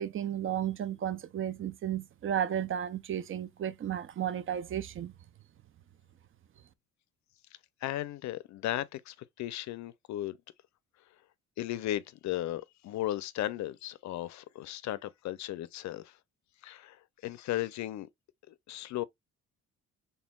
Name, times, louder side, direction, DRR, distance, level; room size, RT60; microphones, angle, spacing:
voice 1, 0.0-5.1, right 10 dB, 45° right, 0.5 m, -33 dB
voice 2, 7.8-10.4 11.6-16.1 16.6-17.0 17.2-18.1 18.5-19.0, left 14 dB, 65° left, 0.5 m, -36 dB
4.3 x 3.4 x 2.2 m
cardioid pair, 90°, 30 cm